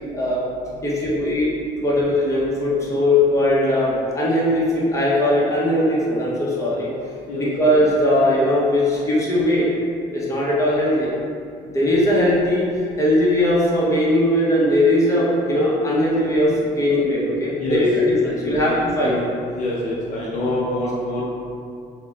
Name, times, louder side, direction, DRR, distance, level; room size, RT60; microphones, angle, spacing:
voice 1, 0.8-1.5 1.8-6.9 7.4-9.7 10.1-11.1 11.6-12.7 13.0-17.9 18.2-19.2, left 1 dB, 20° left, -7 dB, 0.8 m, -19 dB
voice 2, 19.5-21.2, left 1 dB, 50° left, -6 dB, 0.5 m, -25 dB
4.0 x 2.1 x 2.4 m, 2.4 s
cardioid pair, 110°, 17 cm